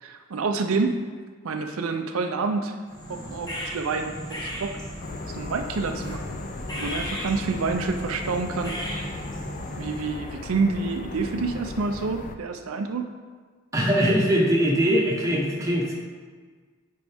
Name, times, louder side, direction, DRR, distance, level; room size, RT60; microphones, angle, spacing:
voice 1, 0.0-1.0 1.4-2.7 3.1-4.7 5.3-6.2 6.8-8.7 9.8-13.1, right 4 dB, 85° right, 5 dB, 0.5 m, -28 dB
sound 1, 2.9-10.1, equal, 20° left, 1.2 m, -35 dB
sound 2, 5.0-12.4, left 3 dB, 40° left, 0.3 m, -38 dB
voice 2, 13.7-15.9, equal, 15° right, -3 dB, 1.0 m, -21 dB
9.1 x 4.6 x 3.5 m, 1.5 s
head